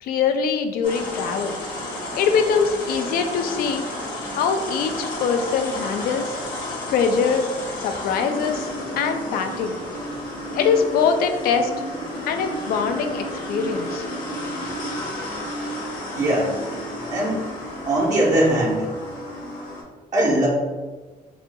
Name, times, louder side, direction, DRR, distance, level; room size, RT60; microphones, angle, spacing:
voice 1, 0.0-1.6 2.2-3.8 4.3-6.3 6.9-7.5 7.8-8.7 9.0-9.8 10.5-11.7 12.3-14.0, left 6 dB, 85° left, 7 dB, 0.4 m, -23 dB
sound 1, 0.8-19.8, left 1 dB, 65° left, 1.1 m, -32 dB
voice 2, 16.2-16.5 17.1-17.4 17.9-18.8 20.1-20.5, right 1 dB, 55° right, -5 dB, 0.9 m, -20 dB
4.1 x 2.6 x 2.2 m, 1.3 s
cardioid pair, 105°, 15 cm